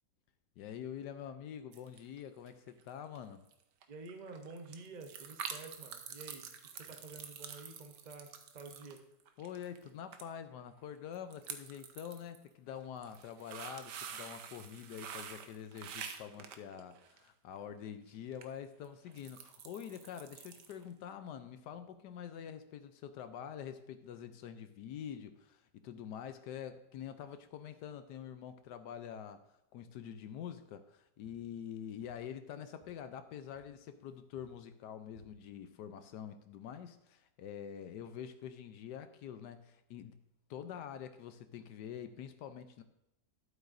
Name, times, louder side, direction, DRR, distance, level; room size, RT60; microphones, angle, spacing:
voice 1, 0.6-3.4 9.4-29.4 29.7-40.2 40.5-42.8, left 9 dB, 80° left, 9 dB, 1.2 m, -46 dB
sound 1, 1.7-2.2 2.5-2.9 3.2-3.3 3.5-3.6 3.8-9.9 10.1-10.2 10.5-10.6 11.1-12.4 12.8-17.3 18.3-18.4 18.8-20.8 21.1-21.2, right 7 dB, 80° right, 1.4 m, -47 dB
voice 2, 3.9-9.0, right 3 dB, 45° right, 5 dB, 0.6 m, -50 dB
sound 2, 31.2-33.1 33.5-35.5, right 3 dB, 15° right, 2.6 m, -66 dB
12.5 x 8.0 x 2.6 m, 0.84 s
omnidirectional pair, 1.8 m